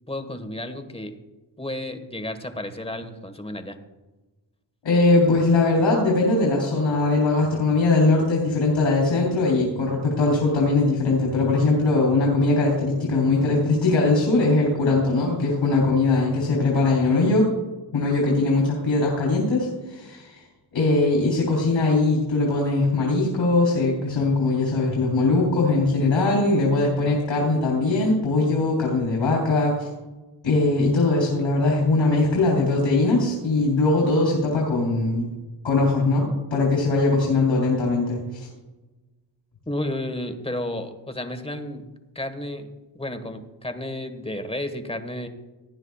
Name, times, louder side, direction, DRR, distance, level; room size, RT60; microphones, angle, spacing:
voice 1, 0.1-1.2 1.6-3.8 39.7-41.9 42.1-42.7 42.9-45.3, left 1 dB, 15° left, 7 dB, 1.5 m, -32 dB
voice 2, 4.8-17.5 17.9-20.4 20.7-29.9 30.4-35.4 35.6-38.5, left 3 dB, 85° left, -2 dB, 3.7 m, -21 dB
18.0 x 9.7 x 2.4 m, 1.1 s
cardioid pair, 55°, 45 cm